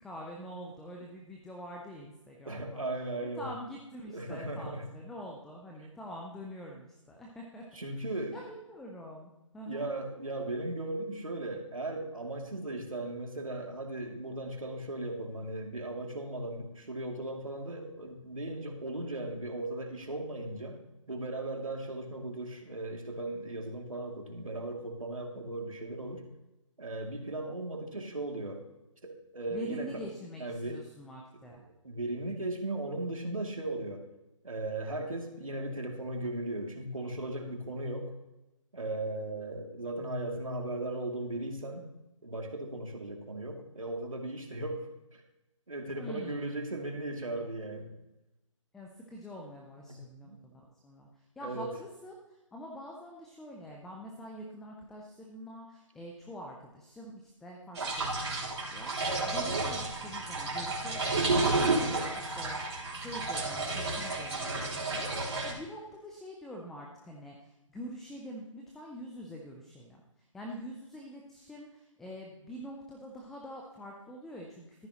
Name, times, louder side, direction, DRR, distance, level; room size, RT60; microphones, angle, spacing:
voice 1, 0.0-2.8 3.2-7.6 8.3-9.9 29.5-31.6 46.0-46.5 48.7-62.6 62.9-74.9, equal, ahead, 0 dB, 0.3 m, -45 dB
voice 2, 2.5-3.5 4.1-4.8 7.7-8.4 9.7-20.8 21.1-26.2 26.8-28.6 29.0-30.0 30.4-30.8 31.8-34.0 34.4-38.1 38.7-41.8 42.2-45.2 45.7-47.9 49.8-50.0 50.2-50.4 51.4-51.7, right 2 dB, 85° right, 2 dB, 2.5 m, -37 dB
sound 1, 57.7-65.5, right 3 dB, 55° right, 3.6 m, -31 dB
14.0 x 10.5 x 2.9 m, 0.99 s
figure-of-eight pair, 145°, 17 cm